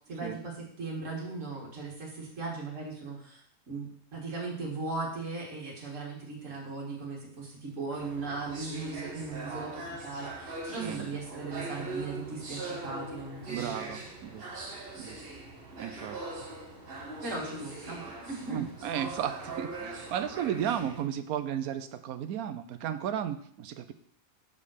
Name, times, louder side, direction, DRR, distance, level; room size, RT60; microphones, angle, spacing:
voice 1, 0.1-14.1 17.0-18.6, right 3 dB, 60° right, -3 dB, 2.2 m, -38 dB
sound 1, 7.9-21.0, right 2 dB, 45° right, 1.4 m, -41 dB
voice 2, 10.7-11.1 13.5-14.4 15.0-15.2 15.8-16.5 18.5-23.9, right 9 dB, 85° right, 11 dB, 1.1 m, -34 dB
5.4 x 5.2 x 6.5 m, 0.63 s
omnidirectional pair, 1.5 m